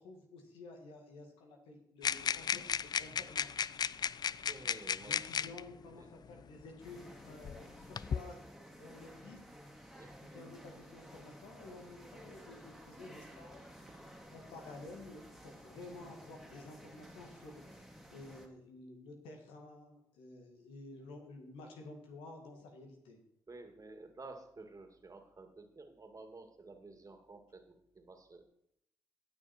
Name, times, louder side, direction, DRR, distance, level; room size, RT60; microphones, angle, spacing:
voice 1, 0.0-3.5 5.0-8.4 8.7-9.4 10.2-13.7 14.3-17.8 18.1-23.2, left 2 dB, 85° left, 2 dB, 2.0 m, -52 dB
sound 1, 2.0-5.6 6.6-6.7 7.4-8.2, left 7 dB, 50° left, 0.4 m, -35 dB
voice 2, 4.4-5.6 6.0-6.4 9.9-10.1 23.5-28.4, right 3 dB, 40° right, 5 dB, 2.3 m, -52 dB
sound 2, 6.8-18.5, equal, ahead, 2.4 m, -54 dB
16.5 x 6.2 x 4.4 m, 0.75 s
supercardioid pair, 45°, 9 cm